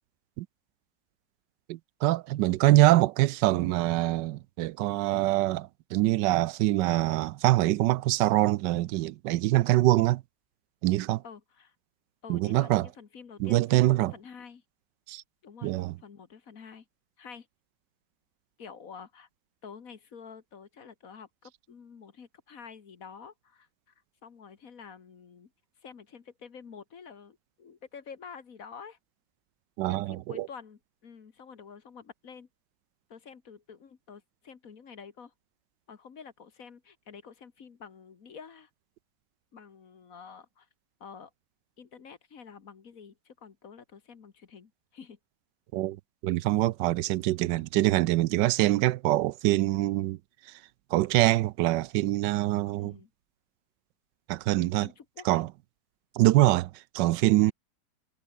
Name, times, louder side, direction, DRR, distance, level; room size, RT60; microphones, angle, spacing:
voice 1, 1.7-10.2 10.8-11.2 12.3-12.9 13.4-14.1 15.1-15.2 15.6-15.9 29.8-30.5 45.7-46.0 46.2-50.2 50.9-52.9 54.3-54.9 55.3-55.5 56.2-56.7 56.9-57.5, right 16 dB, 85° right, 1.2 m, -24 dB
voice 2, 11.2-11.7 12.2-14.6 15.4-16.9 17.2-17.5 18.6-19.3 19.6-23.9 24.2-25.5 25.8-29.0 29.9-32.5 33.1-35.3 35.9-38.7 39.5-40.7 41.0-41.3 41.8-45.2 52.8-53.1 54.8-55.4, left 6 dB, 55° left, 1.9 m, -48 dB
omnidirectional pair, 1.9 m